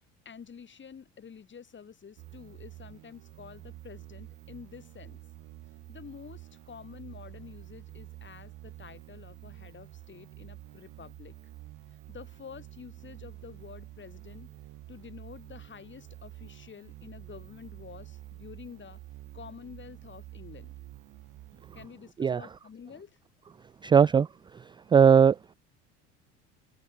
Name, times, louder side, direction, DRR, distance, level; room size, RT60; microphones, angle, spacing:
voice 1, 0.2-5.2 5.9-11.4 12.1-14.5 14.9-19.0 19.3-20.7 21.7-23.2, left 6 dB, 30° left, 6.0 m, -48 dB
sound 1, 2.2-21.9, right 16 dB, 55° right, 5.1 m, -48 dB
voice 2, 23.8-24.3 24.9-25.5, right 7 dB, 15° right, 0.3 m, -19 dB
open air
hypercardioid pair, 80°, 37 cm